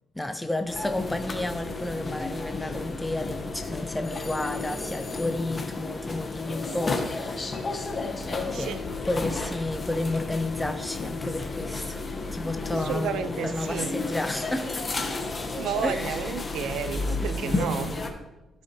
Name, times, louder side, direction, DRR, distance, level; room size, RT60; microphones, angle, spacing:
voice 1, 0.2-7.8 8.5-8.8 9.1-12.1 12.3-15.2 15.8-16.3 17.2-17.3 17.7-17.9, left 1 dB, 10° left, 0.4 m, -32 dB
sound 1, 0.7-18.1, left 3 dB, 30° left, 1.3 m, -32 dB
voice 2, 12.7-14.0 15.5-18.0, right 7 dB, 85° right, 0.5 m, -32 dB
14.0 x 6.2 x 3.1 m
cardioid pair, 90°, 0 cm